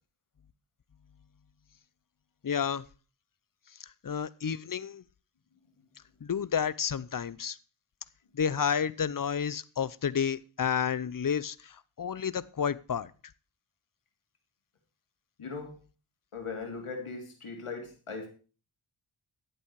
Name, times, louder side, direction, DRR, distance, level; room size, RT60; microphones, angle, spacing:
voice 1, 2.4-2.8 3.8-5.0 6.2-7.6 8.3-13.1, left 7 dB, 40° left, 0.7 m, -31 dB
voice 2, 15.4-15.7 16.3-18.3, left 4 dB, 90° left, 3.1 m, -39 dB
12.0 x 8.4 x 4.8 m
cardioid pair, 45°, 49 cm